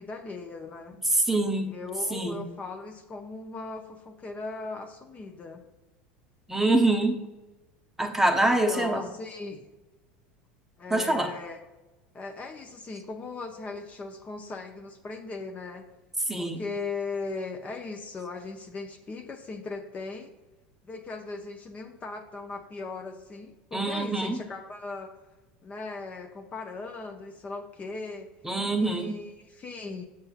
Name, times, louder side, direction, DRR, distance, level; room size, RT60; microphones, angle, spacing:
voice 1, 0.0-1.0 1.7-5.6 8.5-9.7 10.8-11.6 12.1-15.9 16.4-20.3 20.8-25.1 25.6-28.3 28.7-30.0, left 3 dB, 30° left, 4 dB, 0.7 m, -38 dB
voice 2, 1.1-1.7 2.1-2.4 6.5-7.2 8.0-9.1 10.9-11.3 16.3-16.6 23.7-24.4 28.4-29.2, right 2 dB, 5° right, 4 dB, 0.9 m, -25 dB
7.5 x 6.9 x 2.5 m, 1.1 s
hypercardioid pair, 80°, 5 cm